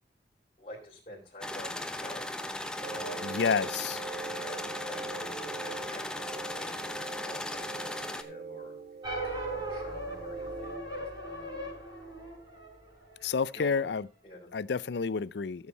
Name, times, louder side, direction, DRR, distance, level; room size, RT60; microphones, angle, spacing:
voice 1, 0.6-2.4 2.8-3.3 3.6-3.8 4.1-8.7 9.5-11.7 13.5-13.8 14.2-14.5, equal, 35° left, 3.8 m, -47 dB
sound 1, 1.4-8.2, left 1 dB, 5° left, 0.8 m, -37 dB
sound 2, 2.8-10.8, right 4 dB, 65° right, 1.6 m, -42 dB
voice 2, 3.2-4.0 13.2-14.1 14.5-15.7, left 5 dB, 75° left, 0.5 m, -30 dB
sound 3, 9.0-13.6, right 1 dB, 25° right, 6.5 m, -39 dB
14.5 x 7.3 x 4.1 m
head